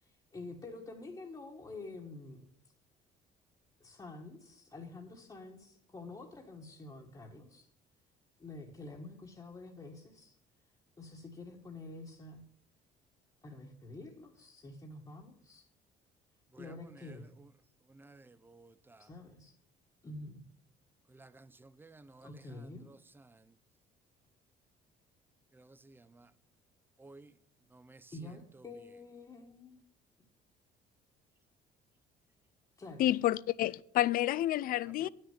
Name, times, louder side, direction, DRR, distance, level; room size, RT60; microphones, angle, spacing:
voice 1, 0.0-2.4 3.8-7.7 8.4-10.4 11.0-12.4 13.4-15.7 16.6-17.3 19.0-19.6 20.0-20.5 22.2-22.9 28.1-29.8 32.8-33.1, left 2 dB, 20° left, 1.4 m, -48 dB
voice 2, 18.0-19.0 21.1-22.3 25.6-26.3 27.0-27.3 27.7-28.0, right 3 dB, 10° right, 0.5 m, -56 dB
voice 3, 33.0-35.1, left 14 dB, 60° left, 0.4 m, -29 dB
9.6 x 6.5 x 7.2 m
cardioid pair, 110°, 17 cm